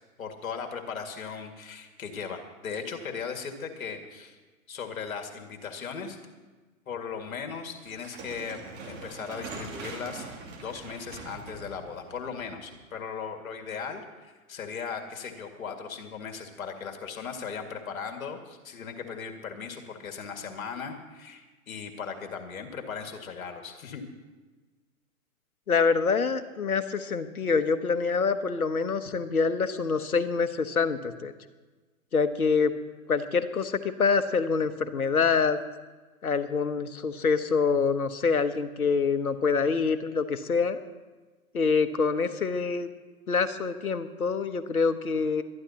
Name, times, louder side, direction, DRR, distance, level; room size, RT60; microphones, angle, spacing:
voice 1, 0.2-4.4 4.7-6.2 6.9-8.6 8.9-24.0, left 6 dB, 70° left, 4 dB, 2.2 m, -38 dB
sound 1, 7.8-13.0, right 4 dB, 30° right, 2.8 m, -42 dB
voice 2, 25.7-31.3 32.1-32.7 33.1-35.6 36.2-40.8 41.5-42.9 43.3-45.4, left 5 dB, 90° left, 11 dB, 1.1 m, -26 dB
22.5 x 13.0 x 2.9 m, 1.3 s
hypercardioid pair, 120°, 42 cm